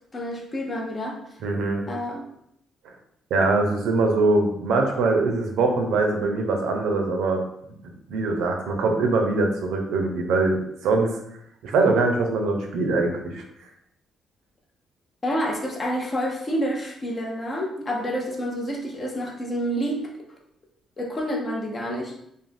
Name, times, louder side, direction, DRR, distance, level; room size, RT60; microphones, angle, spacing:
voice 1, 0.1-1.2 1.9-2.3 15.2-20.1 21.0-22.1, equal, 35° left, 1 dB, 0.6 m, -28 dB
voice 2, 1.4-1.9 3.3-7.4 7.8-11.2 11.6-13.4, right 3 dB, 85° right, 2 dB, 0.5 m, -22 dB
2.5 x 2.0 x 3.2 m, 0.74 s
cardioid pair, 90°, 0 cm